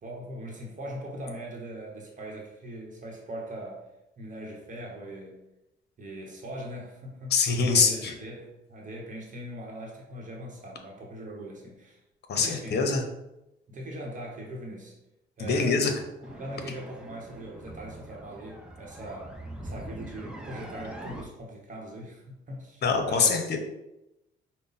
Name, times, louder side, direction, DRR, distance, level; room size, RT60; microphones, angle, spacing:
voice 1, 0.0-3.8 4.2-5.4 6.0-12.0 12.3-12.8 13.7-14.9 15.4-19.3 19.6-22.8 23.1-23.4, right 1 dB, 40° right, -1 dB, 1.0 m, -40 dB
voice 2, 7.3-8.1 12.3-13.0 15.4-15.9 22.8-23.6, left 5 dB, 55° left, 5 dB, 0.8 m, -24 dB
sound 1, 16.2-21.2, right 1 dB, 5° right, 0.7 m, -43 dB
5.2 x 2.2 x 4.0 m, 0.91 s
cardioid pair, 90°, 20 cm